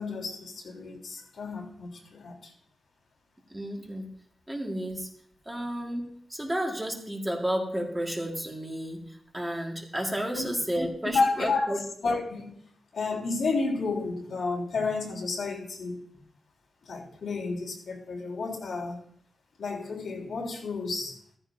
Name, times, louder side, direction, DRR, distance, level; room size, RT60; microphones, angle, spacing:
voice 1, 0.0-2.5 10.3-10.4 11.0-12.5 12.9-16.0 16.8-19.0 19.6-21.2, left 3 dB, 65° left, -1 dB, 3.4 m, -31 dB
voice 2, 3.5-4.1 4.5-5.1 5.4-11.8, equal, 10° right, 1 dB, 1.7 m, -32 dB
15.0 x 14.5 x 2.7 m, 0.63 s
wide cardioid pair, 160°, 0 cm